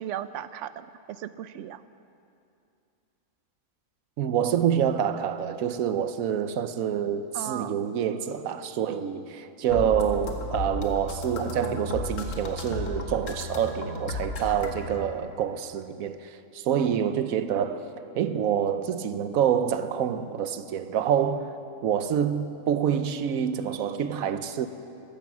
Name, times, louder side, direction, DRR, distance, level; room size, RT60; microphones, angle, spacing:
voice 1, 0.0-1.8 7.3-7.8, right 11 dB, 70° right, 0.9 m, -36 dB
voice 2, 4.2-17.9 18.1-21.6 21.8-24.7, right 8 dB, 90° right, 1.1 m, -27 dB
sound 1, 9.7-14.9, left 2 dB, 65° left, 1.7 m, -34 dB
14.5 x 14.0 x 6.1 m
omnidirectional pair, 1.4 m